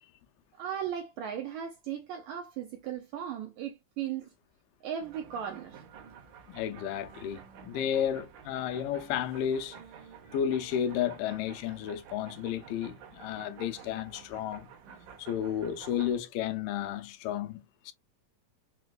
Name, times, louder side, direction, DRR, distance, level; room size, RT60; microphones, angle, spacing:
voice 1, 0.6-4.3 4.8-5.8, right 9 dB, 90° right, 1.6 m, -37 dB
sound 1, 5.0-16.2, right 7 dB, 70° right, 2.2 m, -51 dB
voice 2, 6.5-9.8 10.3-14.7 15.2-17.9, left 9 dB, 85° left, 2.2 m, -32 dB
5.8 x 2.1 x 2.3 m
omnidirectional pair, 3.9 m